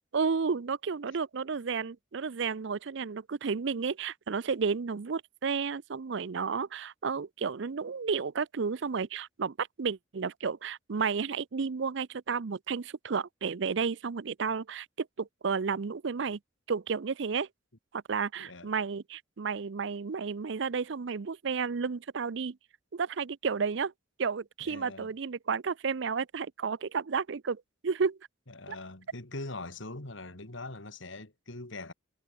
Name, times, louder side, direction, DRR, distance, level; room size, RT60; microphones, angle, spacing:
voice 1, 0.1-16.4 16.7-17.5 17.9-22.6 22.9-23.9 24.2-28.2 28.7-28.8, right 5 dB, 60° right, 0.5 m, -32 dB
voice 2, 18.4-18.7 24.6-25.1 28.5-31.9, left 2 dB, 70° left, 2.9 m, -42 dB
head